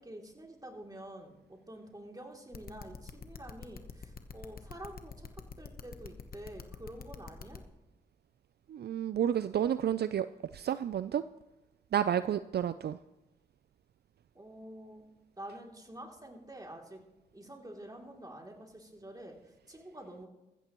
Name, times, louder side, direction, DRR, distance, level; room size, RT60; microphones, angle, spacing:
voice 1, 0.0-7.6 14.3-15.0 15.4-17.0 17.3-20.3, right 1 dB, 20° right, 1 dB, 2.9 m, -48 dB
sound 1, 2.5-7.6, left 6 dB, 55° left, 1.1 m, -45 dB
voice 2, 8.7-11.2 11.9-13.0, right 9 dB, 65° right, 13 dB, 0.4 m, -31 dB
14.5 x 14.0 x 3.1 m, 0.99 s
cardioid pair, 50°, 18 cm